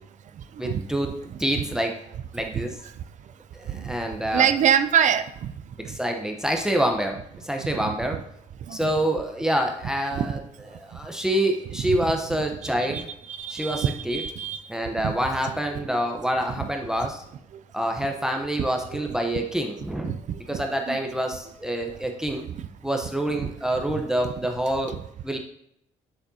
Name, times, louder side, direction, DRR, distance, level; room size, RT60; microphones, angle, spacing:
voice 1, 0.6-1.1 1.4-2.0 2.3-2.8 3.5-4.5 5.8-8.2 8.7-10.4 10.7-13.1 13.5-14.2 14.7-17.2 17.7-20.1 20.5-22.5 22.8-25.0 25.2-25.4, right 1 dB, 5° right, 3 dB, 0.9 m, -27 dB
voice 2, 4.3-5.5 8.7-8.9 10.1-10.3 11.9-12.0 12.6-13.0 13.3-14.6 15.0-15.1 15.7-15.9 18.9-19.0 20.0-20.6 20.9-21.0 22.5-22.6 23.4-23.5, right 8 dB, 60° right, 12 dB, 0.5 m, -25 dB
7.2 x 6.6 x 2.8 m, 0.75 s
cardioid pair, 75°, 14 cm